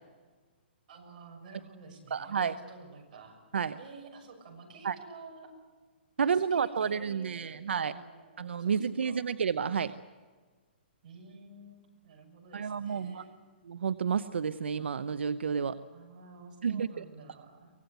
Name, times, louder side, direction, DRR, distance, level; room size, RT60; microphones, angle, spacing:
voice 1, 0.9-3.4 3.8-5.5 6.2-9.2 11.0-13.4 15.9-17.7, right 3 dB, 45° right, 1 dB, 6.6 m, -51 dB
voice 2, 2.1-2.5 3.5-3.8 4.8-5.0 6.2-7.9 8.4-9.9 12.5-13.2 13.7-15.8 16.6-16.9, right 6 dB, 85° right, 12 dB, 0.9 m, -30 dB
24.0 x 18.5 x 8.1 m, 1.4 s
hypercardioid pair, 160°, 6 cm